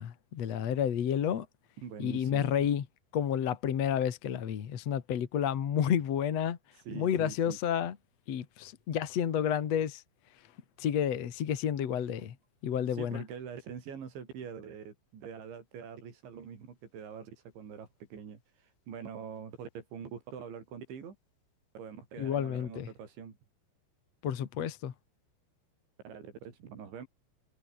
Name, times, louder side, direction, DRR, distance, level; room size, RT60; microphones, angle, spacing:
voice 1, 0.0-1.5 2.0-2.9 3.1-6.6 6.9-8.0 8.3-10.0 10.8-12.3 12.6-13.2 22.2-22.9 24.2-24.9, left 9 dB, 50° left, 2.2 m, -30 dB
voice 2, 1.8-2.7 6.7-7.6 12.9-21.2 21.7-23.4 26.0-27.1, right 7 dB, 85° right, 6.7 m, -44 dB
omnidirectional pair, 5.2 m